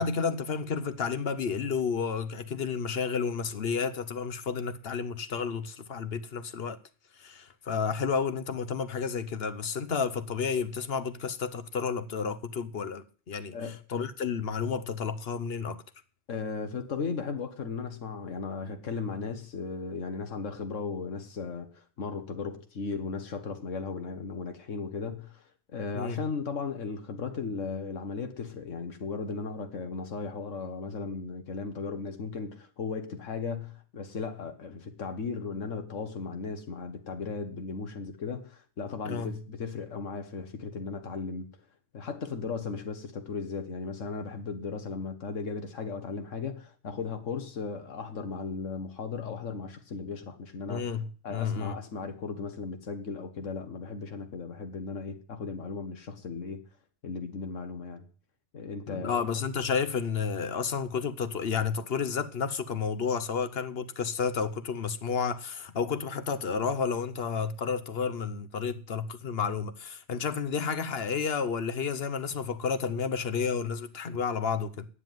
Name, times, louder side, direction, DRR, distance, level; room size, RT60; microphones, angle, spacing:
voice 1, 0.0-6.8 7.2-15.8 25.9-26.2 39.0-39.3 50.7-51.8 58.9-74.9, left 6 dB, 55° left, 1.1 m, -31 dB
voice 2, 16.3-41.5 41.9-50.8 51.2-56.6 57.0-58.0 58.5-59.2, left 4 dB, 90° left, 1.6 m, -36 dB
9.8 x 7.7 x 9.2 m
omnidirectional pair, 1.2 m